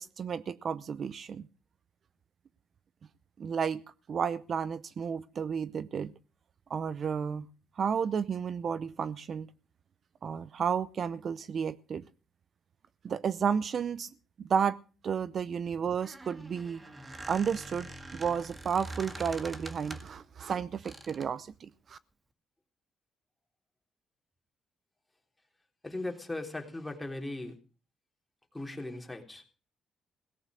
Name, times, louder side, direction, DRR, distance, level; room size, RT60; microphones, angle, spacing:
voice 1, 0.0-1.4 3.4-3.8 4.1-6.1 6.7-7.5 7.8-9.5 10.2-12.0 13.0-14.1 14.4-14.8 15.0-16.8 17.3-22.0, right 7 dB, 55° right, 0.6 m, -32 dB
Squeak, 15.8-20.2 20.8-21.4, right 2 dB, 25° right, 1.8 m, -44 dB
voice 2, 25.8-27.6 28.5-29.4, left 2 dB, 10° left, 3.6 m, -38 dB
17.5 x 9.2 x 6.4 m
cardioid pair, 90°, 0 cm